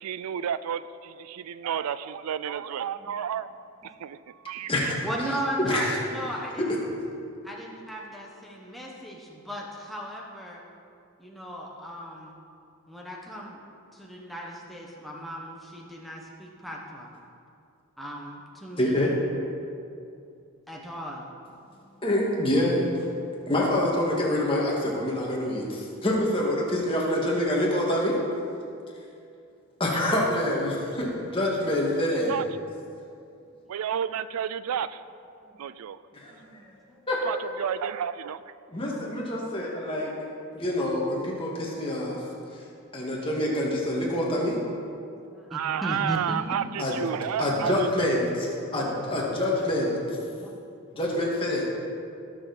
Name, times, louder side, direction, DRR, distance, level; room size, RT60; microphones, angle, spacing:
voice 1, 0.0-5.0 32.2-32.4 33.7-35.0 35.6-36.0 37.2-38.5 45.5-47.9, right 8 dB, 85° right, 14 dB, 0.4 m, -31 dB
voice 2, 5.0-6.8 7.4-10.6 11.2-12.4 12.9-13.6 13.9-17.1 18.0-19.1 20.7-21.3 35.4-35.6 36.3-37.0 45.0-46.4 48.8-49.0 50.3-50.5, equal, ahead, -3 dB, 1.2 m, -37 dB
voice 3, 5.6-6.0 6.6-6.8 18.8-19.1 22.0-23.0 23.5-28.2 29.8-32.4 36.1-36.3 37.1-37.2 38.7-40.1 40.5-42.2 42.9-44.6 46.8-47.0 47.4-50.0 50.9-51.6, left 1 dB, 25° left, -3 dB, 1.9 m, -26 dB
17.0 x 6.8 x 4.2 m, 2.5 s
head